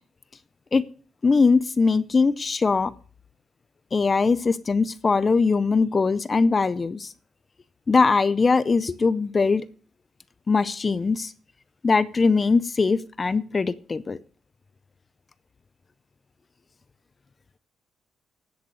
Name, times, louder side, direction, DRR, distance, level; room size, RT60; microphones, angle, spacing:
voice 1, 1.2-2.9 3.9-7.1 7.9-9.6 10.5-11.3 11.8-14.2, left 4 dB, 30° left, 16 dB, 0.6 m, -21 dB
9.7 x 8.1 x 6.3 m, 0.40 s
cardioid pair, 90°, 0 cm